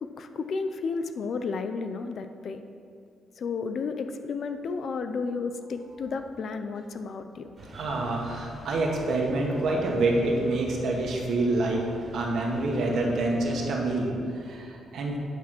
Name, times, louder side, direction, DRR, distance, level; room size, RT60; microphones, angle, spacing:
voice 1, 0.0-2.6 3.4-7.5, left 4 dB, 45° left, 8 dB, 0.5 m, -32 dB
sound 1, 7.6-13.8, equal, 20° right, 2.2 m, -45 dB
voice 2, 7.7-11.9 12.1-15.2, right 2 dB, 60° right, -1 dB, 1.6 m, -27 dB
9.9 x 6.0 x 6.0 m, 2.4 s
cardioid pair, 160°, 0 cm